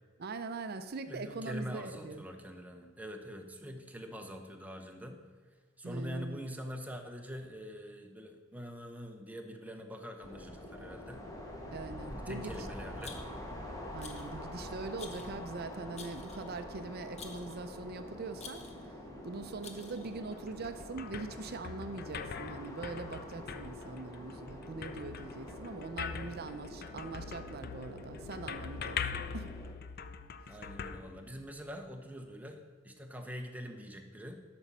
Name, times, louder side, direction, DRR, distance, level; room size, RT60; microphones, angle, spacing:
voice 1, 0.2-2.2 5.8-6.4 11.7-12.7 13.9-19.0 19.2-29.0 29.3-29.5, right 3 dB, 50° right, 9 dB, 0.5 m, -42 dB
voice 2, 1.1-5.2 5.8-11.2 12.1-13.2 30.5-34.4, equal, 10° right, 4 dB, 0.9 m, -44 dB
sound 1, 10.2-29.7, left 1 dB, 15° left, 1.4 m, -46 dB
Rattle, 13.0-13.5 14.0-14.4 15.0-15.4 16.0-16.5 17.2-17.6 18.4-18.9 19.6-20.1, left 5 dB, 35° left, 1.0 m, -50 dB
sound 2, 20.3-31.8, left 6 dB, 50° left, 0.5 m, -43 dB
12.0 x 6.1 x 5.5 m, 1.5 s
head